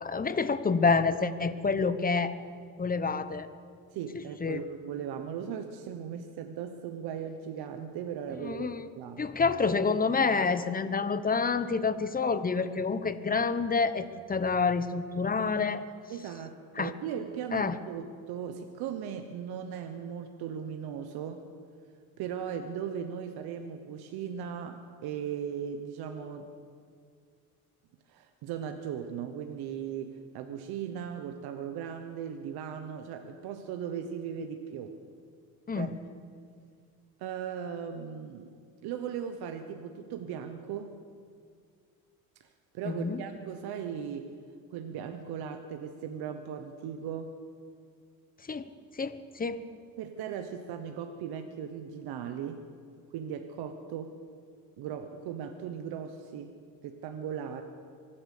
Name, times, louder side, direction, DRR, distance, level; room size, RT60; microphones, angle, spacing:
voice 1, 0.0-2.3 2.8-3.5 4.1-4.6 8.4-8.9 9.2-15.9 16.8-16.9 17.5-17.8 35.7-35.9 42.8-43.2 48.5-48.7 49.0-49.6, left 4 dB, 20° left, 12 dB, 1.0 m, -28 dB
voice 2, 3.9-8.7 9.0-9.2 16.1-21.4 22.2-26.5 28.1-35.0 35.8-35.9 37.2-38.5 38.8-41.0 42.4-42.5 42.7-44.3 44.7-47.3 50.0-52.7 53.1-54.1 54.8-56.5 56.8-57.6, right 8 dB, 75° right, 7 dB, 1.1 m, -38 dB
24.5 x 8.9 x 6.7 m, 2.2 s
supercardioid pair, 85°, 39 cm